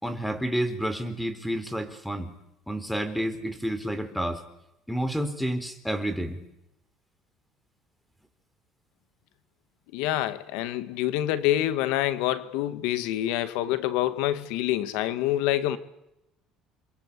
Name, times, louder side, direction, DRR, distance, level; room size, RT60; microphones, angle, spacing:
voice 1, 0.0-2.3 2.7-4.4 4.9-6.4, equal, ahead, 11 dB, 4.1 m, -30 dB
voice 2, 9.9-15.8, left 13 dB, 85° left, 13 dB, 2.1 m, -26 dB
29.0 x 23.5 x 8.6 m, 0.85 s
cardioid pair, 105°, 0 cm